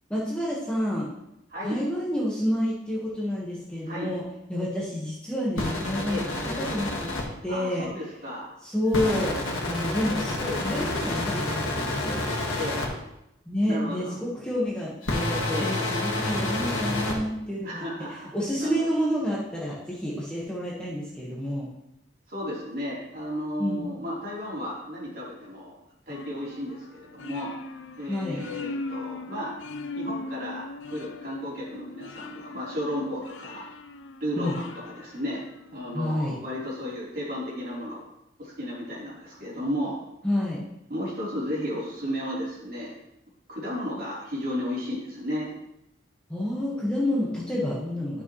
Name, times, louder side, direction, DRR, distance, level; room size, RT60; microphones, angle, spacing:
voice 1, 0.1-1.1 1.6-4.2 4.5-7.1 7.4-7.9 8.6-12.2 13.4-17.8 18.1-21.7 23.6-23.8 28.1-28.4 34.3-34.5 35.9-36.4 40.2-40.6 46.3-48.2, left 1 dB, 5° left, -6 dB, 1.3 m, -29 dB
voice 2, 1.5-1.8 3.9-4.1 6.1-6.2 7.5-8.6 12.5-12.8 13.7-14.1 15.5-15.7 17.6-18.3 18.5-18.7 22.3-25.8 26.1-27.6 28.0-29.5 29.9-33.6 34.2-34.7 35.0-35.4 35.7-38.1 38.4-40.0 40.9-43.0 43.5-45.5, equal, 50° right, -6 dB, 3.5 m, -33 dB
sound 1, 5.6-7.2 8.9-12.9 15.0-17.2, left 2 dB, 85° left, 1.8 m, -29 dB
sound 2, 26.1-35.9, left 2 dB, 70° left, 0.5 m, -40 dB
11.5 x 6.2 x 3.1 m, 0.86 s
head